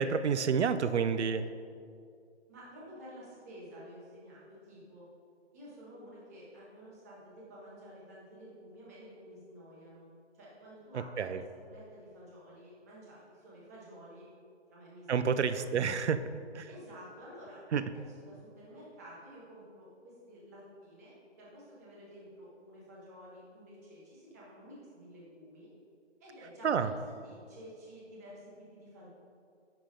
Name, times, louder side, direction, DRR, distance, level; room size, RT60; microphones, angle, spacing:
voice 1, 0.0-1.5 10.9-11.4 15.1-16.7 17.7-17.9 26.6-26.9, right 6 dB, 70° right, 12 dB, 0.6 m, -29 dB
voice 2, 2.5-5.1 5.5-10.1 10.3-11.4 11.7-14.2 14.7-15.6 16.7-17.6 17.9-25.7 26.2-29.1, equal, 15° right, -6 dB, 1.2 m, -51 dB
10.5 x 3.8 x 5.1 m, 2.3 s
hypercardioid pair, 170°, 35 cm